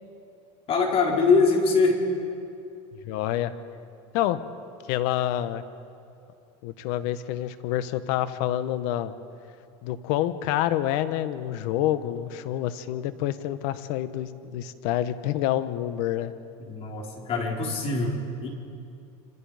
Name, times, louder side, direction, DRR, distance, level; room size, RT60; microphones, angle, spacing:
voice 1, 0.7-2.0 16.6-18.5, left 4 dB, 40° left, 0 dB, 4.8 m, -23 dB
voice 2, 3.0-3.5 4.1-4.4 4.9-5.6 6.6-9.1 9.8-16.3, left 12 dB, 65° left, 12 dB, 1.4 m, -27 dB
27.5 x 26.5 x 5.2 m, 2.5 s
supercardioid pair, 125°, 15 cm